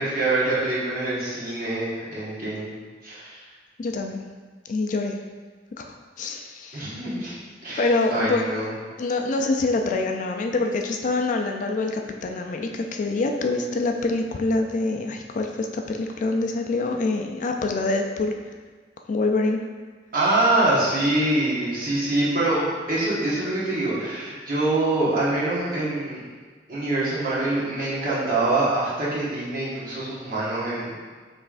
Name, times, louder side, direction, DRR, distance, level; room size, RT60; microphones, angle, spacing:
voice 1, 0.0-2.7 3.0-3.4 6.7-7.3 7.6-8.7 20.1-26.2 26.7-30.9, right 2 dB, 50° right, -8 dB, 1.4 m, -24 dB
voice 2, 3.8-4.2 4.7-5.2 5.8-5.9 6.2-6.9 7.7-8.5 9.0-18.3 19.1-19.6, left 3 dB, 45° left, 3 dB, 0.3 m, -25 dB
6.5 x 3.3 x 2.5 m, 1.5 s
head